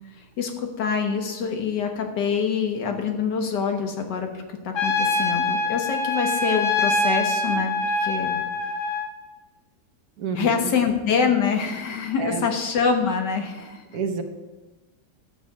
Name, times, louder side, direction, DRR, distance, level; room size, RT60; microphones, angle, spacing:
voice 1, 0.4-7.7 8.0-8.4 10.4-13.8, left 6 dB, 75° left, 5 dB, 1.9 m, -25 dB
Trumpet, 4.7-9.1, left 3 dB, 50° left, 1.3 m, -24 dB
voice 2, 10.2-10.7 12.2-12.4 13.9-14.2, right 5 dB, 60° right, 7 dB, 1.3 m, -28 dB
11.0 x 6.7 x 7.2 m, 1.2 s
omnidirectional pair, 1.9 m